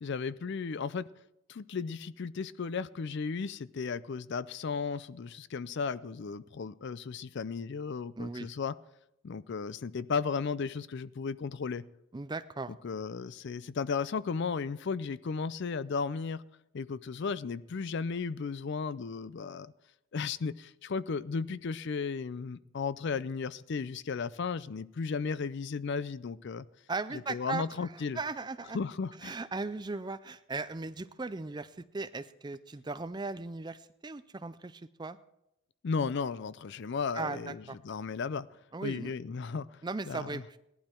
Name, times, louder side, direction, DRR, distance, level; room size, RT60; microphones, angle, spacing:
voice 1, 0.0-1.1 1.5-8.7 9.2-11.8 12.8-16.4 16.7-19.7 20.1-26.7 27.3-28.2 28.7-29.3 35.8-38.5 38.8-39.8 40.1-40.4, left 5 dB, 50° left, 17 dB, 0.4 m, -35 dB
voice 2, 8.2-8.5 12.1-12.7 26.9-28.8 29.2-35.2 37.1-37.8 38.7-39.1 39.8-40.6, right 3 dB, 20° right, 13 dB, 0.4 m, -38 dB
17.0 x 11.5 x 4.5 m, 0.86 s
head